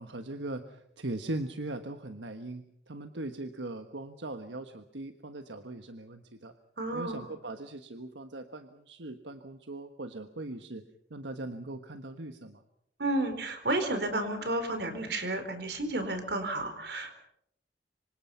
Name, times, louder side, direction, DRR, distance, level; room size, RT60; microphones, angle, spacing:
voice 1, 0.0-6.5 6.9-10.8 11.1-12.6, right 2 dB, 90° right, 8 dB, 1.3 m, -40 dB
voice 2, 6.8-7.2 13.0-17.1, right 2 dB, 65° right, 8 dB, 4.3 m, -31 dB
26.0 x 25.5 x 5.7 m, 0.73 s
head